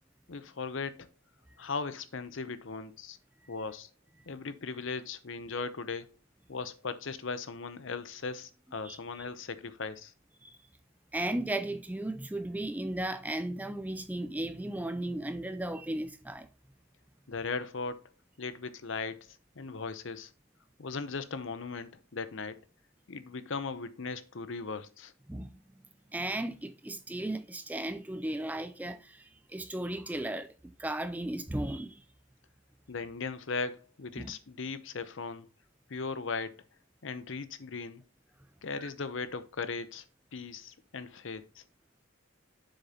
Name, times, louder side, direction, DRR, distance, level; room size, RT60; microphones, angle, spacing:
voice 1, 0.3-1.1 1.6-3.2 3.5-3.9 4.3-6.1 6.5-10.1 17.3-18.0 18.4-20.3 20.8-22.6 23.1-25.1 32.9-35.5 35.9-36.6 37.0-38.0 38.6-40.0 40.3-41.6, left 4 dB, 65° left, 0.7 m, -38 dB
voice 2, 11.1-16.5 25.3-25.5 26.1-32.0 34.2-34.3 38.8-38.9, right 1 dB, 10° right, 0.3 m, -35 dB
7.5 x 6.6 x 2.9 m
head